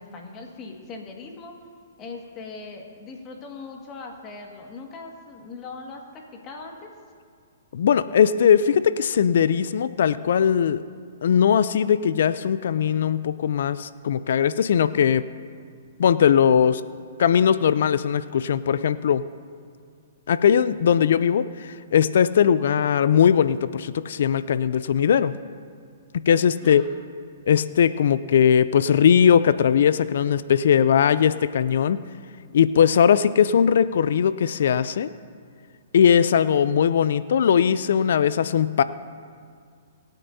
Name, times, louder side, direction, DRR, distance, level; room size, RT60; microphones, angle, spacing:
voice 1, 0.0-1.5 2.0-6.9 26.6-27.0, left 3 dB, 30° left, 1 dB, 1.8 m, -40 dB
voice 2, 7.7-10.8 11.2-15.2 16.0-16.8 17.2-19.2 20.3-25.3 26.1-26.8 27.5-32.0 32.5-35.1 35.9-38.8, left 8 dB, 65° left, 15 dB, 0.4 m, -19 dB
25.0 x 9.0 x 2.7 m, 2.2 s
hypercardioid pair, 135°, 0 cm